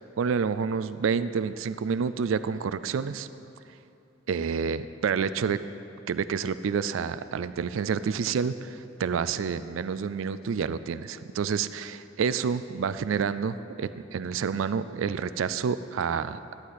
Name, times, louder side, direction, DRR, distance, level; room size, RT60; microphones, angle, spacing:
voice 1, 0.0-3.3 4.3-5.6 6.1-16.4, right 6 dB, 80° right, 14 dB, 0.4 m, -29 dB
14.5 x 9.5 x 4.1 m, 2.8 s
head